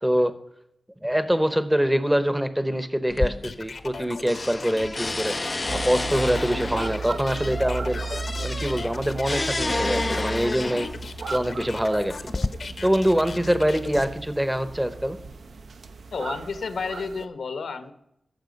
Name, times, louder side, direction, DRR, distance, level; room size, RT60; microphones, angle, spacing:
voice 1, 0.0-0.3 1.0-5.3 5.7-8.0 8.4-10.9 11.3-12.1 12.8-15.2, equal, 5° right, 11 dB, 0.8 m, -24 dB
sound 1, 3.1-4.0 4.3-11.1 11.9-12.5, left 2 dB, 25° left, 0.3 m, -30 dB
sound 2, 3.4-14.1, left 4 dB, 55° left, 0.8 m, -39 dB
sound 3, 5.7-17.2, right 4 dB, 75° right, 0.8 m, -35 dB
voice 2, 16.1-17.9, left 5 dB, 85° left, 10 dB, 1.1 m, -31 dB
15.0 x 6.9 x 5.3 m, 0.78 s
wide cardioid pair, 135°, 0 cm